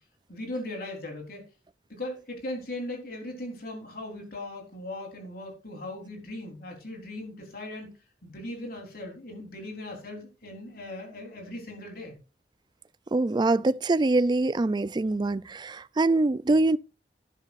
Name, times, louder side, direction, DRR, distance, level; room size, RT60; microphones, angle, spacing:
voice 1, 0.3-1.4 1.9-7.9 8.2-12.2, left 1 dB, 55° left, 3.9 m, -38 dB
voice 2, 13.1-16.8, right 2 dB, 25° right, 0.4 m, -24 dB
12.0 x 10.5 x 2.5 m
head